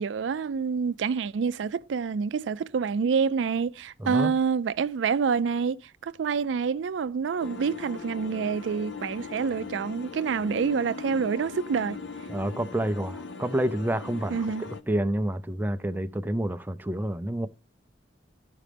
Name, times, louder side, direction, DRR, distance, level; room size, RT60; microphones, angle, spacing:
voice 1, 0.0-12.0 14.3-14.6, right 6 dB, 80° right, 0.4 m, -27 dB
voice 2, 4.0-4.3 12.3-17.5, right 1 dB, 10° right, 0.4 m, -29 dB
sound 1, 7.4-14.8, left 4 dB, 70° left, 0.6 m, -40 dB
12.0 x 5.0 x 3.3 m
head